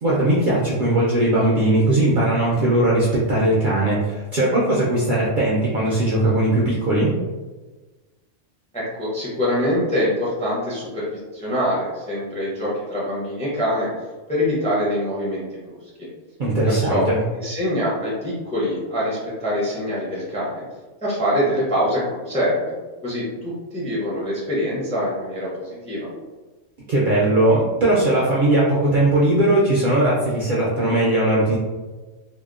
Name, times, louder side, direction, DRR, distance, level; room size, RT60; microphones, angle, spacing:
voice 1, 0.0-7.1 16.4-17.3 26.9-31.6, right 1 dB, 60° right, -6 dB, 0.5 m, -19 dB
voice 2, 8.7-13.9 14.3-15.8 16.7-17.1 17.3-20.6 21.0-22.7 23.0-26.1, equal, 10° left, -6 dB, 0.4 m, -24 dB
2.8 x 2.0 x 2.3 m, 1.2 s
omnidirectional pair, 1.3 m